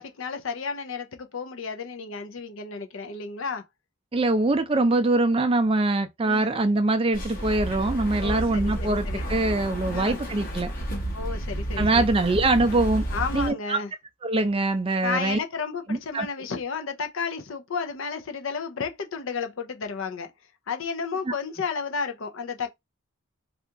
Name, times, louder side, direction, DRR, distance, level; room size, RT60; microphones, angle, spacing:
voice 1, 0.0-3.6 6.2-6.5 8.2-9.2 9.9-10.2 11.1-12.1 13.1-13.9 15.0-20.3 20.7-22.7, left 5 dB, 65° left, 0.5 m, -32 dB
voice 2, 4.1-10.7 11.8-13.0 13.3-13.8 14.2-15.4 15.9-16.3 21.3-21.4, right 2 dB, 25° right, 0.4 m, -23 dB
sound 1, 7.1-13.5, right 1 dB, 40° left, 0.9 m, -31 dB
2.8 x 2.4 x 3.4 m
head